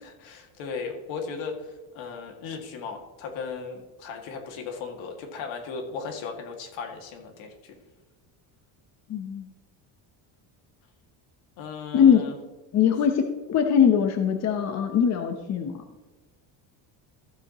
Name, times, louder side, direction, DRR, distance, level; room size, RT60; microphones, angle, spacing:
voice 1, 0.2-7.7 11.6-12.3, left 5 dB, 70° left, 3 dB, 2.1 m, -36 dB
voice 2, 9.1-9.5 11.9-12.2 12.7-15.8, left 8 dB, 35° left, 6 dB, 0.8 m, -21 dB
15.0 x 7.7 x 2.9 m, 1.2 s
cardioid pair, 165°, 48 cm